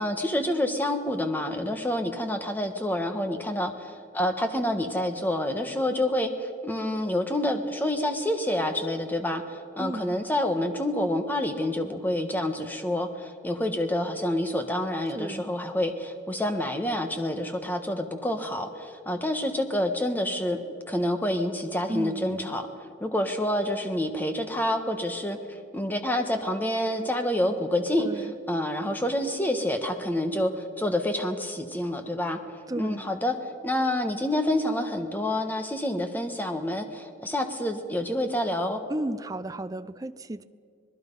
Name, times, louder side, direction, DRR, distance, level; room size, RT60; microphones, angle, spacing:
voice 1, 0.0-20.6 20.9-32.4 32.7-38.8, left 1 dB, 10° left, 6 dB, 1.3 m, -28 dB
voice 2, 9.8-10.2 15.2-15.5 21.9-22.5 28.0-28.3 32.7-33.1 38.9-40.4, right 1 dB, 20° right, 12 dB, 0.4 m, -34 dB
25.5 x 20.0 x 5.4 m, 2.3 s
head